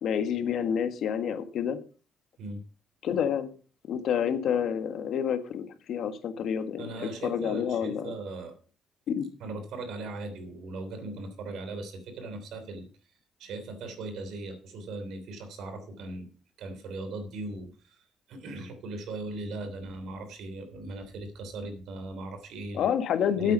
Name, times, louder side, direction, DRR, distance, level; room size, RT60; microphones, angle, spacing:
voice 1, 0.0-1.8 3.0-3.5 3.9-6.9 7.2-8.1 9.1-9.3 22.7-23.5, left 8 dB, 75° left, 9 dB, 1.6 m, -28 dB
voice 2, 6.8-8.5 9.4-12.9 13.4-16.3 16.6-22.9 23.4-23.5, right 2 dB, 80° right, 8 dB, 3.1 m, -39 dB
9.5 x 8.2 x 5.7 m, 0.38 s
cardioid pair, 90°, 0 cm